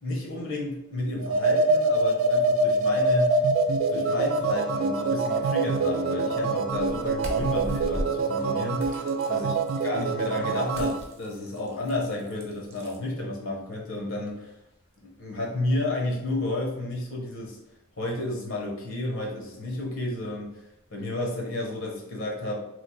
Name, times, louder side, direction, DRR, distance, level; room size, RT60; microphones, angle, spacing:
voice 1, 0.0-3.5 3.9-9.0 9.3-9.6 9.8-14.5 15.0-17.6 18.0-20.6 20.9-22.6, left 2 dB, 70° left, -1 dB, 0.8 m, -31 dB
sound 1, 1.2-11.0, right 2 dB, 70° right, 0.3 m, -25 dB
sound 2, 6.7-21.1, equal, 10° right, 0.5 m, -43 dB
sound 3, 7.2-7.8 8.8-9.9 10.7-13.0, right 1 dB, 50° right, 0.7 m, -43 dB
3.1 x 2.0 x 3.9 m, 0.83 s
head